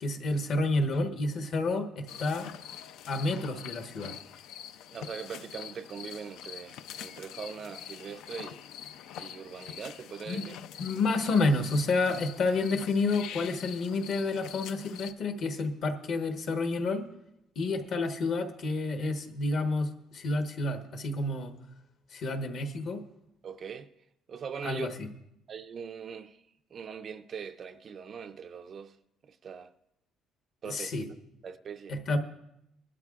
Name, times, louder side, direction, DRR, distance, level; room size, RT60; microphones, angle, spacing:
voice 1, 0.0-2.5 3.1-4.2 10.3-10.4 10.8-17.0 17.5-21.5 22.1-23.0 24.6-25.1 30.6-31.0 31.9-32.2, left 3 dB, 45° left, 1.1 m, -29 dB
sound 1, 2.1-15.1, left 9 dB, 70° left, 0.5 m, -45 dB
voice 2, 4.9-8.6 9.2-10.6 23.4-23.9 24.3-24.9 25.5-26.4 26.7-29.0 29.2-29.7 30.6-31.1 31.4-32.0, right 6 dB, 35° right, 0.4 m, -41 dB
20.5 x 12.5 x 2.4 m
cardioid pair, 170°, 0 cm